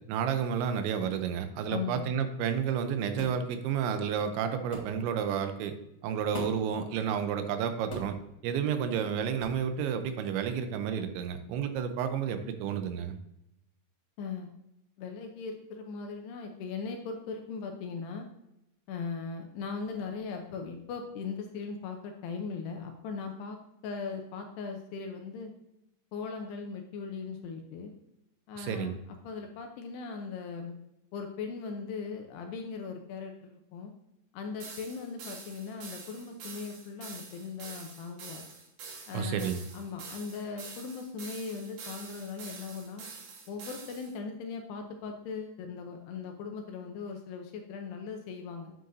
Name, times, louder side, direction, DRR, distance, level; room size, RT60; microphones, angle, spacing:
voice 1, 0.1-5.7 6.0-8.1 8.4-13.2 28.6-29.0 39.1-39.6, right 7 dB, 85° right, 8 dB, 3.0 m, -31 dB
voice 2, 1.7-2.1 14.2-14.5 15.0-18.3 18.9-23.6 23.8-25.5 26.1-27.9 28.5-28.9 29.2-30.8 31.1-33.9 34.3-38.4 39.1-43.1 43.5-48.7, left 5 dB, 75° left, 4 dB, 2.5 m, -39 dB
sound 1, 3.2-3.4 4.7-4.9 6.3-6.7 7.9-8.2 9.4-9.6, equal, 55° left, 1.1 m, -40 dB
sound 2, 34.6-44.1, right 4 dB, 60° right, 3.3 m, -46 dB
9.4 x 7.9 x 2.7 m, 0.84 s
omnidirectional pair, 5.3 m